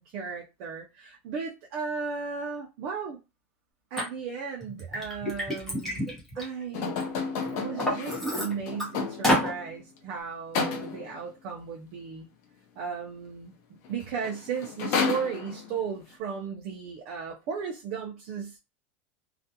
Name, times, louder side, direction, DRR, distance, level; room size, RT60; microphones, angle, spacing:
voice 1, 0.0-3.2 3.9-6.0 6.3-7.0 7.6-12.3 12.8-13.5 13.9-18.6, right 6 dB, 45° right, 0.4 m, -35 dB
Liquid, 4.0-4.1 4.6-7.0 7.4-8.9 9.2-9.5, equal, 5° left, 0.8 m, -29 dB
sound 1, 6.7-9.7 10.5-11.2 13.8-13.9 14.2-15.8, left 5 dB, 45° left, 0.5 m, -31 dB
2.4 x 2.2 x 2.7 m
supercardioid pair, 165°, 7 cm